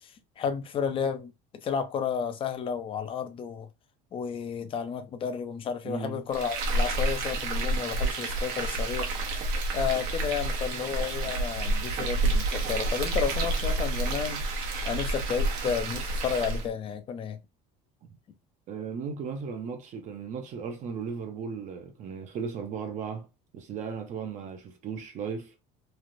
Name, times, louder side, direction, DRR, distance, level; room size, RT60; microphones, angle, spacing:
voice 1, 0.0-3.7 4.1-9.1 9.7-14.5 14.8-17.4, left 7 dB, 30° left, 0.4 m, -32 dB
voice 2, 5.8-6.3 18.7-23.3 23.5-25.5, right 6 dB, 40° right, 0.6 m, -36 dB
Frying (food), 6.3-16.7, right 2 dB, 85° right, 0.9 m, -29 dB
3.2 x 2.4 x 2.5 m
cardioid pair, 150°, 18 cm